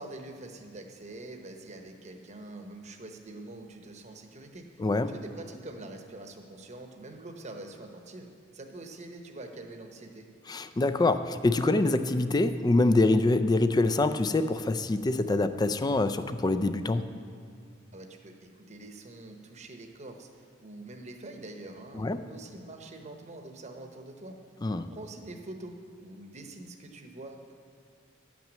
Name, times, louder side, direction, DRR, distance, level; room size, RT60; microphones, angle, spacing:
voice 1, 0.0-10.3 17.9-24.4 24.9-27.6, right 2 dB, 35° right, 4 dB, 0.9 m, -45 dB
voice 2, 4.8-5.1 10.5-17.1 21.9-22.2 24.6-24.9, left 2 dB, 20° left, 11 dB, 0.4 m, -25 dB
10.5 x 6.0 x 7.5 m, 2.3 s
head